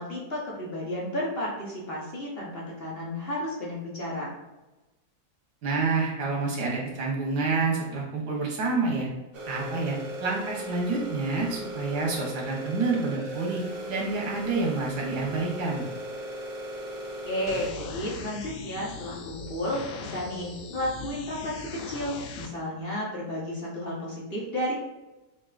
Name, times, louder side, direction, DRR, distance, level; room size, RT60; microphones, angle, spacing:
voice 1, 0.0-4.4 17.3-24.7, left 1 dB, 45° left, -5 dB, 1.0 m, -32 dB
voice 2, 5.6-9.1 9.5-13.6 13.9-15.8, right 3 dB, 85° right, -2 dB, 1.6 m, -28 dB
sound 1, 9.3-17.7, equal, 45° right, 0.9 m, -37 dB
sound 2, 17.5-22.5, left 5 dB, 70° left, 0.9 m, -40 dB
6.0 x 2.6 x 2.4 m, 1.1 s
omnidirectional pair, 1.7 m